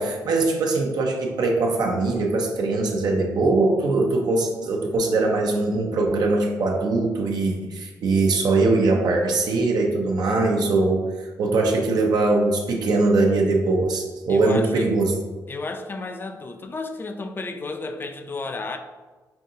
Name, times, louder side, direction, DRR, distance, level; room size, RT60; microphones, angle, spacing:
voice 1, 0.0-15.1, right 3 dB, 75° right, 1 dB, 0.6 m, -21 dB
voice 2, 14.3-14.9 15.5-18.8, left 3 dB, 30° left, 6 dB, 0.4 m, -32 dB
5.5 x 2.7 x 2.6 m, 1.3 s
cardioid pair, 80°, 7 cm